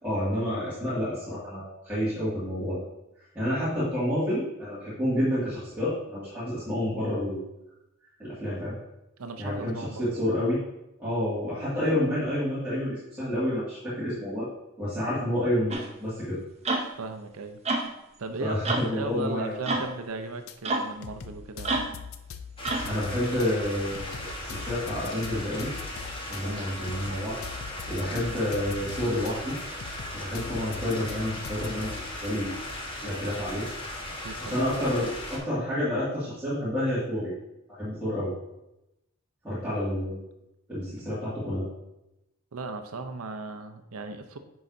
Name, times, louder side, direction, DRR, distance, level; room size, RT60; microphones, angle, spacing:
voice 1, 0.0-2.8 3.3-7.4 8.2-8.8 9.4-10.6 11.0-14.5 14.8-16.4 18.4-19.8 22.9-25.7 26.3-29.6 30.1-31.9 32.2-32.5 33.0-33.6 34.5-37.3 37.7-38.3 39.4-40.2 40.7-41.6, left 1 dB, 10° right, -13 dB, 2.1 m, -29 dB
voice 2, 9.2-10.0 17.0-17.6 18.2-21.8 26.4-26.7 34.1-34.6 42.5-44.4, right 3 dB, 85° right, 7 dB, 0.6 m, -37 dB
sound 1, 15.7-15.9 16.6-16.9 17.6-17.9 18.6-18.9 19.7-19.9 20.6-20.9 21.6-22.0 22.6-22.9, right 2 dB, 30° right, 0.7 m, -28 dB
sound 2, 20.5-20.6 21.0-23.5 23.9-26.4 26.9-29.3 29.8-32.2, left 6 dB, 70° left, 0.5 m, -41 dB
sound 3, 22.6-35.4, left 1 dB, 25° left, 1.1 m, -37 dB
9.7 x 4.8 x 2.7 m, 0.92 s
head